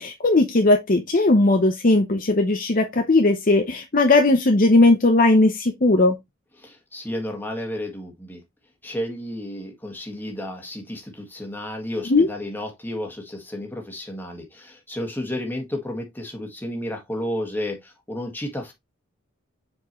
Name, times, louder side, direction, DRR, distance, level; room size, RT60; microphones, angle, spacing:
voice 1, 0.0-6.1 12.1-12.3, left 2 dB, 40° left, 0.8 m, -18 dB
voice 2, 6.6-8.4 8.8-18.7, left 1 dB, 10° left, 1.7 m, -32 dB
7.2 x 4.5 x 3.0 m
head